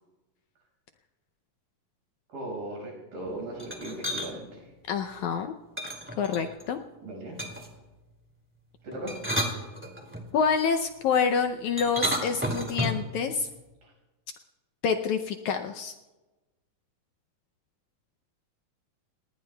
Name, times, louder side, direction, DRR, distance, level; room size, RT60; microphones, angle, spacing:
voice 1, 2.3-4.7 7.0-7.4 8.8-9.1, right 1 dB, 85° right, 0 dB, 7.4 m, -37 dB
sound 1, 3.6-4.3 5.8-6.7 7.4-7.8 8.9-10.2 11.8-13.1, equal, 5° right, 1.8 m, -31 dB
voice 2, 4.9-5.5 6.2-6.8 10.3-13.5 14.8-15.9, left 6 dB, 75° left, 6 dB, 1.8 m, -27 dB
30.0 x 19.0 x 2.3 m, 1.1 s
omnidirectional pair, 4.0 m